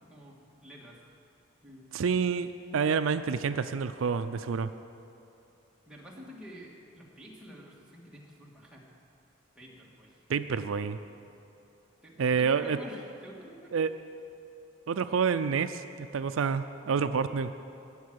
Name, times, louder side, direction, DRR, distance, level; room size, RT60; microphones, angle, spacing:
voice 1, 0.0-1.0 1.6-1.9 5.9-8.9 9.6-10.2 10.6-10.9 12.0-13.9, equal, 5° right, -4 dB, 1.9 m, -49 dB
voice 2, 1.9-4.7 10.3-11.0 12.2-12.8 13.7-13.9 14.9-17.6, right 6 dB, 75° right, 11 dB, 0.4 m, -28 dB
19.0 x 7.5 x 6.3 m, 2.7 s
head